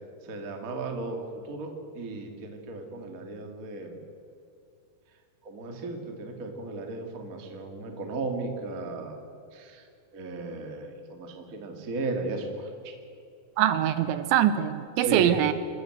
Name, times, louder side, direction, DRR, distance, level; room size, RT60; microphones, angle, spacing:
voice 1, 0.2-4.0 5.4-9.2 9.5-9.8 10.1-12.7 15.0-15.4, right 3 dB, 35° right, 3 dB, 1.3 m, -35 dB
voice 2, 13.6-15.5, right 11 dB, 80° right, 11 dB, 3.0 m, -23 dB
27.5 x 13.5 x 7.9 m, 2.5 s
omnidirectional pair, 5.5 m